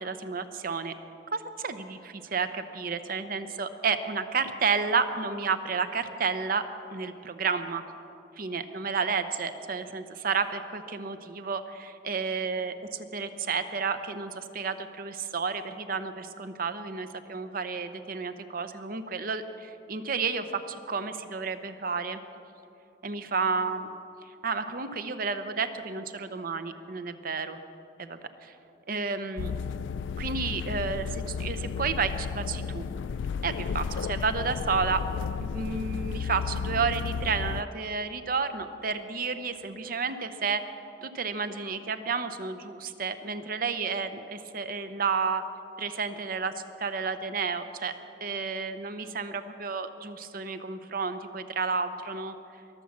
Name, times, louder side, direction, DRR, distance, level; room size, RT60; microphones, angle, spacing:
voice 1, 0.0-0.9 1.3-6.6 6.9-7.8 8.4-22.2 23.0-23.9 24.4-27.6 28.0-28.5 28.9-29.5 30.2-32.8 33.4-35.0 35.4-40.6 41.0-45.4 45.8-47.9 48.2-52.3, right 5 dB, 50° right, 10 dB, 0.8 m, -31 dB
sound 1, 29.4-37.6, left 6 dB, 90° left, 0.3 m, -33 dB
22.5 x 7.5 x 7.3 m, 2.8 s
head